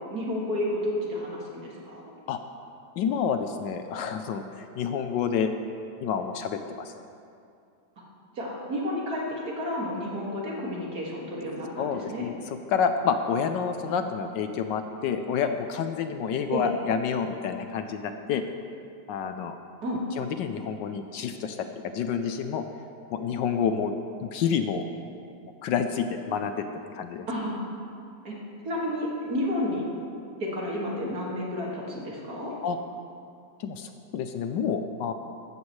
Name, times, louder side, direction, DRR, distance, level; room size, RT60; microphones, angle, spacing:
voice 1, 0.1-2.0 8.4-12.3 16.5-16.7 19.8-20.0 27.3-27.6 28.2-28.3 28.6-29.8 30.4-32.5, left 1 dB, 50° right, -4 dB, 2.5 m, -31 dB
voice 2, 3.0-5.5 6.0-6.9 11.8-12.4 12.7-18.4 19.1-19.5 20.2-21.6 21.8-22.6 23.1-23.9 24.2-24.8 25.6-26.7 27.0-27.3 32.6-32.8 33.6-35.1, left 7 dB, 75° left, 7 dB, 1.2 m, -28 dB
15.5 x 12.5 x 3.2 m, 2.5 s
omnidirectional pair, 2.1 m